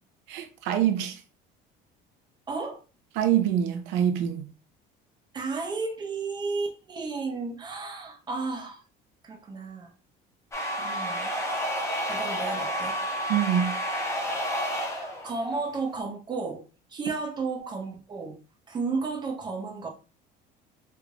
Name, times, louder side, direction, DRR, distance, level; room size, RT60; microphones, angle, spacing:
voice 1, 0.3-1.2 3.2-4.5 13.3-13.7, right 10 dB, 80° right, 0.7 m, -25 dB
voice 2, 2.5-2.8 5.3-8.8 9.2-9.9 10.8-11.3 12.1-13.0 14.9-16.6 16.9-18.4 18.7-19.9, right 4 dB, 25° right, 0.7 m, -33 dB
sound 1, 10.5-16.0, equal, 15° left, 0.7 m, -30 dB
3.3 x 3.3 x 2.5 m
cardioid pair, 150°, 18 cm